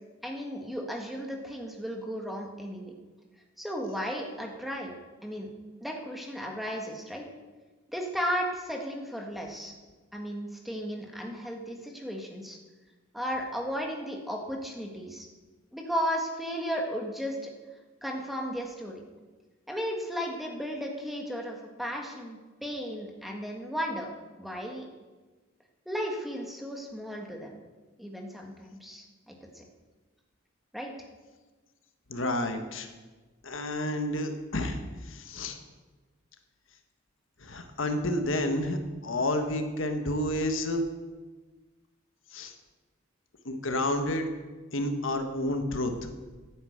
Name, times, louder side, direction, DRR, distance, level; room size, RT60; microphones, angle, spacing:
voice 1, 0.2-2.9 3.6-4.9 5.2-5.5 5.8-7.2 7.9-9.7 10.1-12.6 13.1-15.3 15.7-17.5 18.0-19.0 19.7-24.1 24.4-24.9 25.8-27.5 28.0-29.6 30.7-30.9, equal, ahead, 1 dB, 1.6 m, -35 dB
voice 2, 32.1-32.9 33.4-35.6 37.4-40.8 42.3-42.5 43.4-44.3 44.7-45.9, left 1 dB, 70° left, 6 dB, 1.5 m, -30 dB
10.5 x 9.5 x 8.0 m, 1.3 s
head